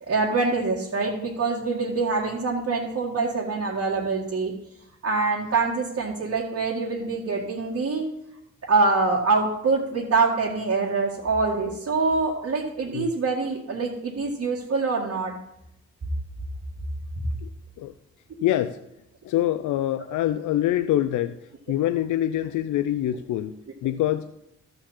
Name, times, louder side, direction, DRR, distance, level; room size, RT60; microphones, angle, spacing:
voice 1, 0.0-4.5 5.0-8.1 8.6-15.4, right 3 dB, 55° right, -5 dB, 2.0 m, -25 dB
voice 2, 18.4-18.8 19.2-21.4 21.7-24.3, left 12 dB, 85° left, 12 dB, 0.5 m, -25 dB
13.0 x 4.5 x 7.2 m, 0.82 s
cardioid pair, 60°, 30 cm